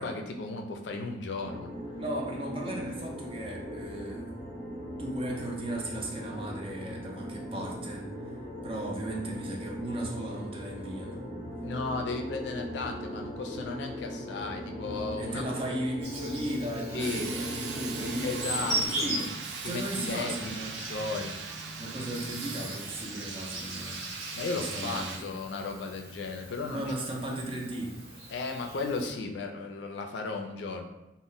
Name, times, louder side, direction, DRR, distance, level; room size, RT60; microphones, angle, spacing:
voice 1, 0.0-1.8 11.6-15.4 16.9-17.3 18.2-19.1 19.6-20.5 20.8-21.4 24.3-26.9 28.3-30.9, left 3 dB, 80° left, 4 dB, 0.4 m, -35 dB
sound 1, 1.4-18.9, equal, 30° left, 0.5 m, -39 dB
voice 2, 2.0-4.3 5.0-8.1 8.6-11.3 15.2-20.9 21.8-24.0 24.5-25.3 26.7-28.0, right 1 dB, 30° right, -1 dB, 0.5 m, -36 dB
Insect, 16.0-29.1, right 1 dB, 65° right, 1.2 m, -40 dB
sound 2, 17.0-25.2, right 4 dB, 90° right, 0.4 m, -39 dB
2.1 x 2.1 x 3.8 m, 0.92 s
head